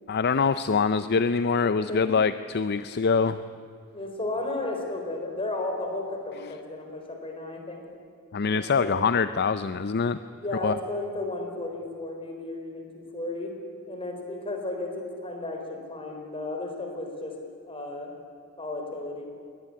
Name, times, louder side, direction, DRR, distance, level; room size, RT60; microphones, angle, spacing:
voice 1, 0.1-3.4 8.3-10.2 10.6-10.7, left 5 dB, 50° left, 13 dB, 0.5 m, -24 dB
voice 2, 1.6-2.1 3.9-7.8 8.5-9.0 10.3-13.5 13.8-17.4 17.7-18.1 18.6-19.3, left 2 dB, 25° left, 3 dB, 4.2 m, -34 dB
22.0 x 19.0 x 9.9 m, 2.3 s
head